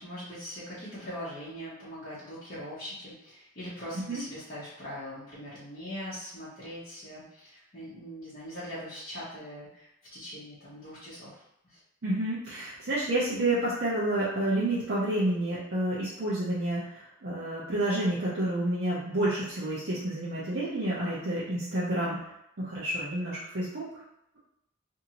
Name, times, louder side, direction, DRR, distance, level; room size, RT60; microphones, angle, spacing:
voice 1, 0.0-11.8 21.0-21.3, equal, 45° left, -10 dB, 0.9 m, -41 dB
voice 2, 12.0-22.2 22.6-23.9, right 1 dB, 50° right, -9 dB, 0.6 m, -29 dB
2.7 x 2.7 x 2.8 m, 0.83 s
head